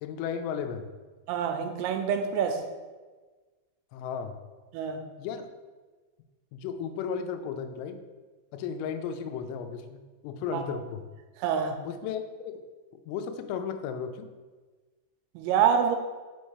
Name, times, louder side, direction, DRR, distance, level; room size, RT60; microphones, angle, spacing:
voice 1, 0.0-0.9 3.9-4.4 5.2-5.5 6.5-8.0 8.5-11.1 11.9-12.6 13.1-14.3, left 7 dB, 85° left, 7 dB, 3.3 m, -34 dB
voice 2, 1.3-2.6 4.7-5.0 10.5-10.7 11.4-11.8 15.4-16.0, right 7 dB, 85° right, 6 dB, 3.3 m, -26 dB
6.4 x 5.5 x 4.5 m, 1.3 s
omnidirectional pair, 5.9 m